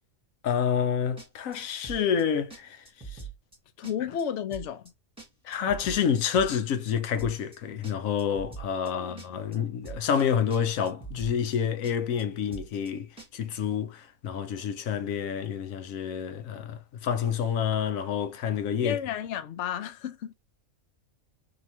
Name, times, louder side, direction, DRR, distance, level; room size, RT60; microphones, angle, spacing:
voice 1, 0.4-3.2 5.4-19.0, left 7 dB, 85° left, 1.1 m, -28 dB
sound 1, 1.2-1.6 1.8-2.2 2.5-2.6 2.8-3.6 3.8-4.2 4.5-4.9 5.2-6.9 7.2-7.6 7.8-8.9 9.2-9.6 9.8-10.2 10.5-10.6 10.8-11.6 11.8-12.2 12.5-12.9 13.2-13.3, right 5 dB, 5° right, 1.2 m, -42 dB
voice 2, 3.8-4.9 8.9-9.2 18.8-20.3, left 9 dB, 65° left, 1.0 m, -32 dB
4.7 x 3.0 x 2.9 m
omnidirectional pair, 1.4 m